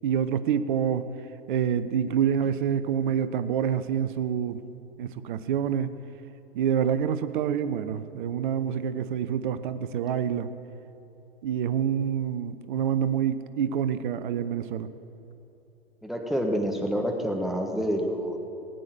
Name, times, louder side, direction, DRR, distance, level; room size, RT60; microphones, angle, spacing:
voice 1, 0.0-1.1 1.5-4.6 5.0-5.9 6.5-10.5 11.4-14.9, right 8 dB, 55° right, 12 dB, 0.7 m, -27 dB
voice 2, 16.0-18.4, equal, ahead, 2 dB, 1.6 m, -28 dB
19.5 x 8.4 x 6.7 m, 2.9 s
figure-of-eight pair, 100°, 31 cm